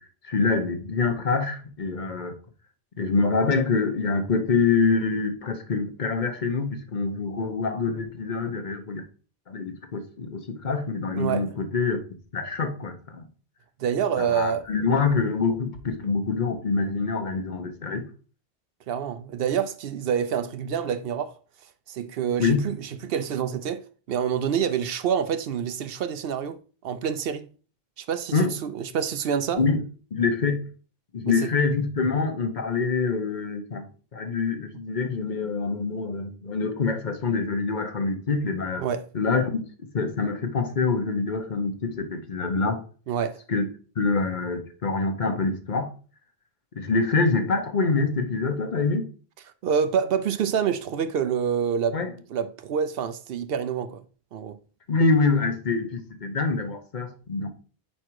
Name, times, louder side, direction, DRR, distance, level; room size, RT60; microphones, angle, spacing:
voice 1, 0.2-2.3 3.0-9.0 9.5-12.0 12.3-13.3 14.2-18.0 22.4-22.6 28.3-28.5 29.6-29.8 30.1-30.6 31.1-33.8 34.1-38.8 39.1-42.8 43.5-43.7 44.0-45.9 46.8-49.0 51.9-52.1 54.9-57.5, left 4 dB, 50° left, 1.0 m, -25 dB
voice 2, 11.1-11.5 13.8-14.6 18.9-21.3 21.9-26.6 26.8-27.5 28.0-29.6 31.3-31.5 38.8-39.0 43.1-43.4 49.6-52.0 52.3-54.0 54.3-54.6, right 7 dB, 70° right, 0.8 m, -27 dB
4.9 x 4.3 x 4.5 m
omnidirectional pair, 1.0 m